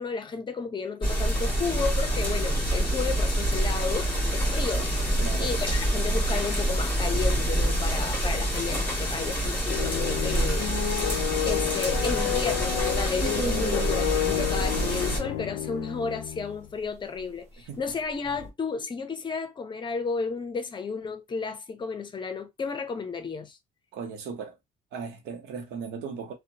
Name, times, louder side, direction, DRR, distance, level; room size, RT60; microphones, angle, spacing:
voice 1, 0.0-4.9 5.4-10.7 11.0-23.6, left 5 dB, 30° left, 0.6 m, -33 dB
sound 1, 1.0-15.2, right 1 dB, 10° left, 1.5 m, -26 dB
voice 2, 5.2-5.5 13.3-14.0 17.7-17.8 23.9-24.6 24.9-26.3, right 6 dB, 90° right, 0.8 m, -38 dB
sound 2, 9.7-16.6, left 13 dB, 80° left, 0.4 m, -30 dB
sound 3, 13.2-18.5, right 4 dB, 45° right, 0.9 m, -38 dB
2.7 x 2.1 x 2.7 m
cardioid pair, 110°, 17 cm